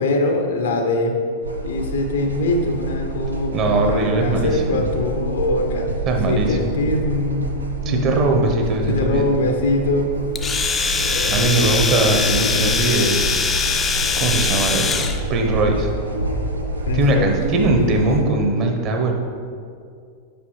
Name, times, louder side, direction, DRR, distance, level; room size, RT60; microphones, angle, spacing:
voice 1, 0.0-1.2 1.6-5.9 6.3-7.5 7.8-8.3 8.9-10.1 11.0-11.4 16.8-17.3, left 2 dB, 65° left, 4 dB, 0.8 m, -23 dB
sound 1, 1.4-18.2, right 2 dB, 80° right, 0.7 m, -28 dB
voice 2, 3.5-4.8 6.1-6.8 7.8-9.3 11.3-13.4 14.2-14.9 15.3-15.9 16.9-19.1, right 2 dB, 35° right, 2 dB, 0.9 m, -20 dB
Domestic sounds home sounds, 10.4-15.2, left 5 dB, 20° left, 0.5 m, -22 dB
8.3 x 5.5 x 3.2 m, 2.3 s
figure-of-eight pair, 90°, 0 cm